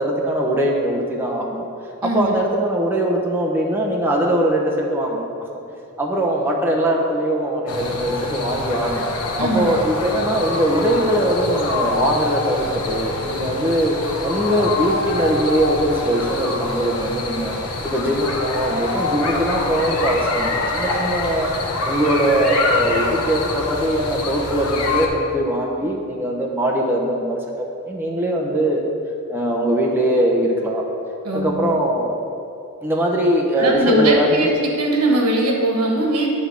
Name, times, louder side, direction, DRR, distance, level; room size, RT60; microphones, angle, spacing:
voice 1, 0.0-1.7 2.0-5.5 6.0-9.1 9.4-14.0 14.2-21.5 21.8-27.4 27.8-28.8 29.3-30.8 31.3-32.1 32.8-34.5, right 1 dB, 10° right, -2 dB, 0.7 m, -21 dB
voice 2, 2.0-2.3 9.4-9.7 31.2-31.7 33.6-36.3, right 1 dB, 85° right, 0 dB, 1.2 m, -20 dB
sound 1, 7.7-25.1, left 3 dB, 85° left, 1.0 m, -25 dB
9.3 x 3.4 x 6.2 m, 2.6 s
head